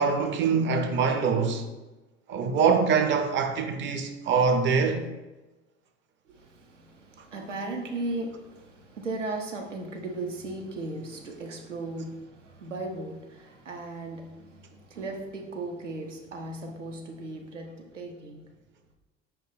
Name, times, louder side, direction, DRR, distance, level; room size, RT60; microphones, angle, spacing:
voice 1, 0.0-1.6 2.3-5.1, right 5 dB, 35° right, 0.5 m, -24 dB
voice 2, 6.3-18.5, right 2 dB, 85° right, 0.6 m, -37 dB
5.3 x 2.2 x 4.0 m
figure-of-eight pair, 60°, 35 cm